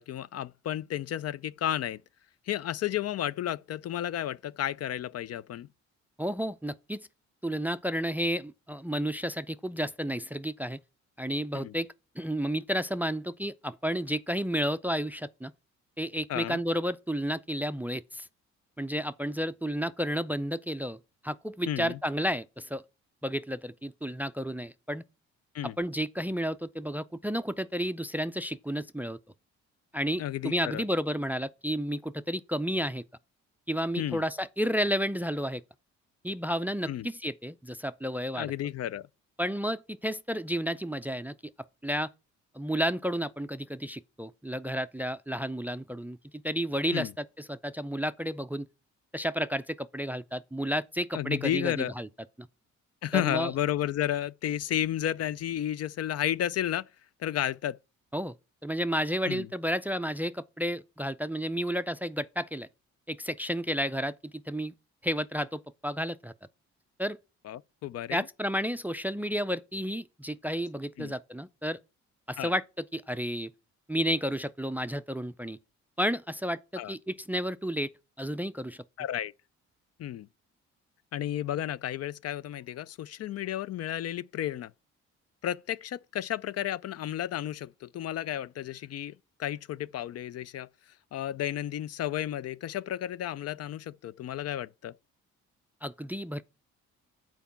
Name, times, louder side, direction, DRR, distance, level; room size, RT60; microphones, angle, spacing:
voice 1, 0.0-2.0 2.5-5.7 11.5-11.7 16.3-16.6 21.7-22.0 25.5-25.7 30.2-30.8 34.0-34.2 36.9-37.1 38.3-39.1 46.9-47.1 51.1-51.9 53.0-56.9 57.2-57.8 59.3-59.5 67.4-68.2 71.0-71.1 72.4-72.5 76.8-76.9 79.0-79.3 80.0-80.3 81.1-84.7 85.4-89.1 89.4-90.7 91.1-94.9, left 11 dB, 55° left, 0.4 m, -32 dB
voice 2, 6.2-7.1 7.4-10.8 11.2-11.9 12.2-15.5 16.0-18.3 18.8-21.0 21.2-22.8 23.2-25.0 25.6-29.2 29.9-33.0 33.7-35.6 36.2-38.5 39.4-41.3 41.8-42.1 42.5-48.7 49.1-52.1 52.4-52.5 53.1-53.5 58.1-58.4 58.6-62.7 63.1-64.7 65.0-66.3 67.0-67.2 68.1-71.8 72.3-72.6 72.9-73.5 73.9-75.6 76.0-77.9 78.2-78.8 95.8-96.4, equal, 5° right, 0.4 m, -31 dB
9.1 x 4.6 x 7.1 m
cardioid pair, 90°, 30 cm